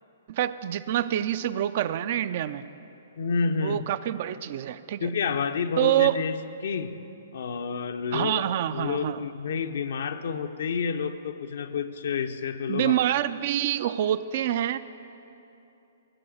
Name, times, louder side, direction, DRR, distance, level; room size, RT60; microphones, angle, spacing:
voice 1, 0.3-2.6 3.6-5.1 5.8-6.2 8.1-9.2 12.7-14.8, right 12 dB, 50° right, 14 dB, 0.4 m, -26 dB
voice 2, 3.2-3.8 5.0-7.0 7.3-8.5 8.7-13.0, left 5 dB, 65° left, 8 dB, 0.7 m, -29 dB
15.0 x 6.9 x 6.6 m, 2.8 s
hypercardioid pair, 130°, 0 cm